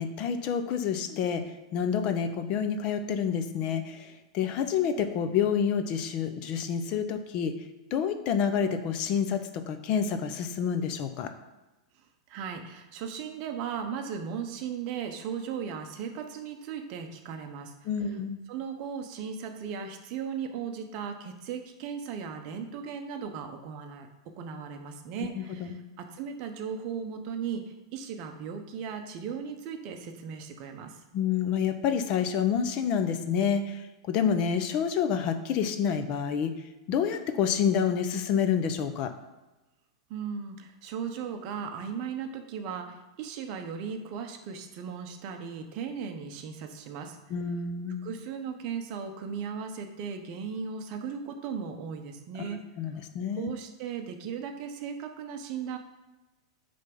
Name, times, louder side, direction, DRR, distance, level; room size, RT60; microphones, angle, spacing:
voice 1, 0.0-4.1 4.3-7.6 7.9-11.3 17.9-18.4 25.3-25.8 31.1-33.8 34.1-36.6 36.9-39.1 47.3-48.0 52.4-53.5, left 7 dB, 35° left, 9 dB, 0.6 m, -28 dB
voice 2, 12.3-17.7 18.5-24.1 24.4-27.6 27.9-30.9 40.1-47.2 48.0-52.6 53.4-55.8, right 7 dB, 35° right, 5 dB, 0.9 m, -37 dB
9.0 x 3.5 x 5.4 m, 1.1 s
supercardioid pair, 160°, 3 cm